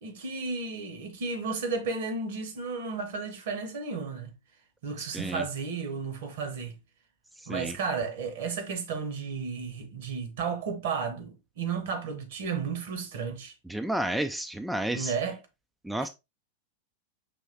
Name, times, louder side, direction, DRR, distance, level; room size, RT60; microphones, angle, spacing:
voice 1, 0.0-4.3 4.8-6.8 7.5-13.5 14.9-15.4 16.0-16.1, right 5 dB, 55° right, 1.0 m, -33 dB
voice 2, 13.7-15.1 15.8-16.1, right 1 dB, 5° right, 0.3 m, -31 dB
5.4 x 3.1 x 2.8 m
figure-of-eight pair, 90°, 0 cm